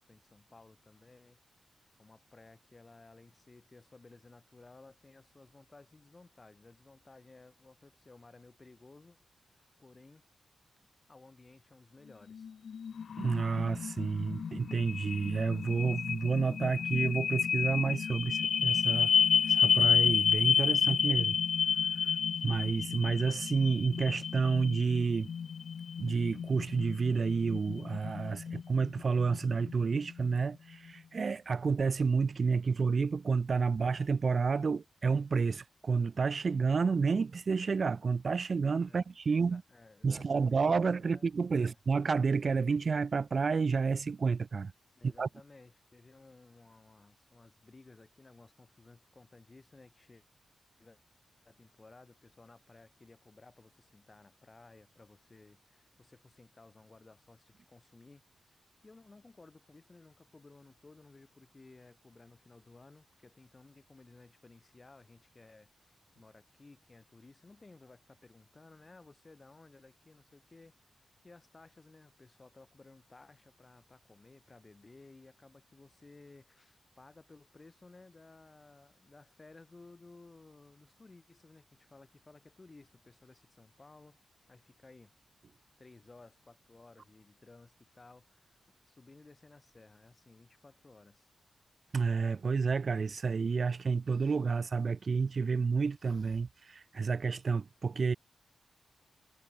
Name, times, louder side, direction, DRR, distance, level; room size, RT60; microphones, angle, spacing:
voice 1, 0.0-1.4 2.0-10.2 11.1-12.5 38.9-41.8 45.0-50.2 50.8-51.0 51.5-70.9 71.2-84.2 84.5-85.1 85.8-91.3, left 3 dB, 25° left, 3.6 m, -57 dB
sound 1, 12.3-30.4, left 7 dB, 70° left, 0.5 m, -31 dB
voice 2, 13.2-19.1 19.5-21.4 22.0-22.1 22.4-25.3 26.0-39.6 40.0-44.7 45.0-45.3 91.9-98.1, right 5 dB, 45° right, 0.3 m, -30 dB
wide cardioid pair, 120°, 0 cm